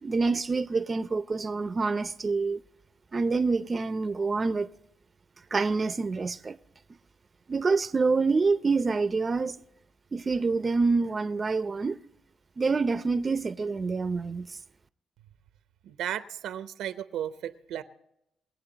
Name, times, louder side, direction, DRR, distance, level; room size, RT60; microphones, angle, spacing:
voice 1, 0.0-2.6 3.1-4.7 5.5-6.6 7.5-9.5 10.1-12.0 12.6-14.5, right 4 dB, 30° right, 0.6 m, -26 dB
voice 2, 15.8-17.8, right 10 dB, 85° right, 0.8 m, -34 dB
21.5 x 8.1 x 4.0 m
cardioid pair, 90°, 0 cm